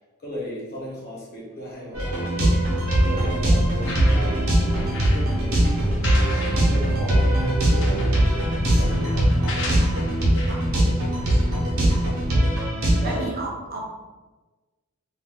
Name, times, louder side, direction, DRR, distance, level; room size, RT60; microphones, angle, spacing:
voice 1, 0.2-2.4 3.0-9.8 10.1-10.3 13.0-13.2, equal, 45° left, -5 dB, 1.0 m, -37 dB
sound 1, 1.9-13.3, right 1 dB, 85° right, 0.8 m, -22 dB
sound 2, 2.6-12.4, equal, 60° left, 0.5 m, -28 dB
voice 2, 9.6-10.7 13.0-13.9, right 2 dB, 45° right, 0 dB, 0.5 m, -35 dB
2.6 x 2.2 x 3.5 m, 1.2 s
head